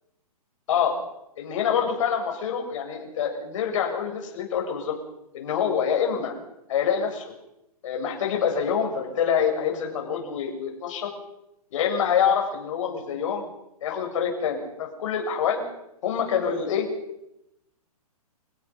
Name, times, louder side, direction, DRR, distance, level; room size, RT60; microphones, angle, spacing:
voice 1, 1.4-4.9 5.3-6.3 6.7-7.3 7.8-11.1 11.7-13.4 13.8-15.6 16.0-16.9, left 7 dB, 55° left, 2 dB, 7.6 m, -26 dB
29.5 x 17.5 x 5.6 m, 0.86 s
hypercardioid pair, 140°, 19 cm